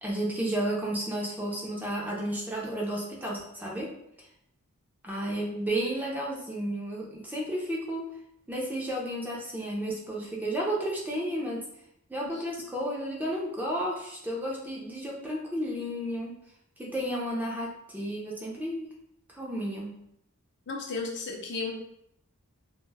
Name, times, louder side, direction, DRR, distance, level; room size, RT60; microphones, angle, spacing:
voice 1, 0.0-3.9 5.0-8.1 8.5-11.6 12.1-16.3 16.8-18.9 19.3-20.0, right 1 dB, 10° right, -4 dB, 0.4 m, -32 dB
voice 2, 20.7-21.7, left 4 dB, 55° left, 0 dB, 0.5 m, -34 dB
2.1 x 2.0 x 3.2 m, 0.74 s
head